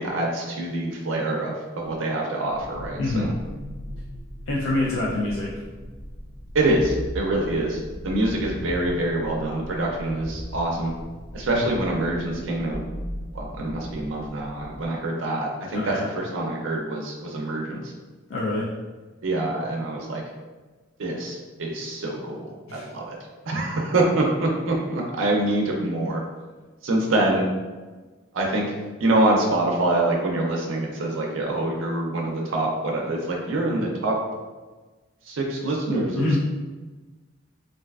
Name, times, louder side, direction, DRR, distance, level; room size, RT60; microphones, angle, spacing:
voice 1, 0.0-3.3 6.5-10.9 11.3-12.8 13.3-17.9 19.2-20.2 21.0-23.2 23.5-26.2 26.8-27.4 28.3-28.7 29.0-34.2 35.3-36.4, right 2 dB, 80° right, -1 dB, 0.5 m, -25 dB
sound 1, 2.5-14.9, equal, 35° left, 0.5 m, -38 dB
voice 2, 3.0-3.4 4.5-5.5 11.5-11.8 15.7-16.1 18.3-18.7 22.7-22.9 36.2-36.4, left 2 dB, 85° left, -4 dB, 0.4 m, -26 dB
3.2 x 2.5 x 2.3 m, 1.3 s
head